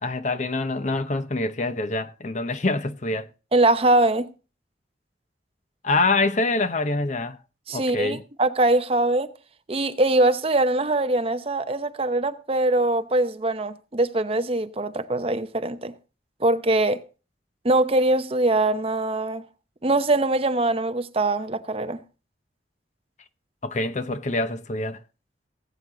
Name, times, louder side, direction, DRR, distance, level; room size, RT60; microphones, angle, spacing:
voice 1, 0.0-3.3 5.8-7.4 7.7-8.2 23.6-25.0, left 2 dB, 40° left, 0.8 m, -25 dB
voice 2, 3.5-4.3 7.7-9.3 9.7-15.9 16.4-17.0 17.6-19.5 19.8-22.0, right 2 dB, 30° right, 0.8 m, -22 dB
19.5 x 8.1 x 3.9 m
head